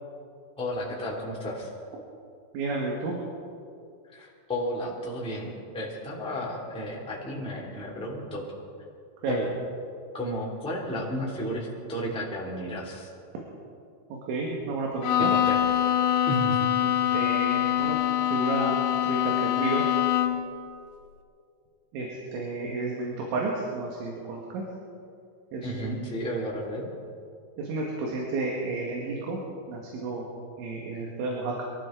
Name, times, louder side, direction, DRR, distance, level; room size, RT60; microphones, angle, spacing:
voice 1, 0.6-1.7 4.1-8.4 9.3-9.5 10.1-13.1 15.3-15.6 16.3-16.7 25.6-26.9, equal, ahead, -5 dB, 1.6 m, -33 dB
voice 2, 2.5-3.1 9.2-9.4 14.1-15.3 16.8-18.0 18.3-19.9 21.9-24.6 25.5-26.1 27.6-29.4 29.7-30.3 30.6-31.6, right 3 dB, 85° right, -2 dB, 4.1 m, -31 dB
Bowed string instrument, 15.0-20.5, left 11 dB, 80° left, 2.3 m, -24 dB
23.5 x 15.0 x 3.9 m, 2.4 s
omnidirectional pair, 5.2 m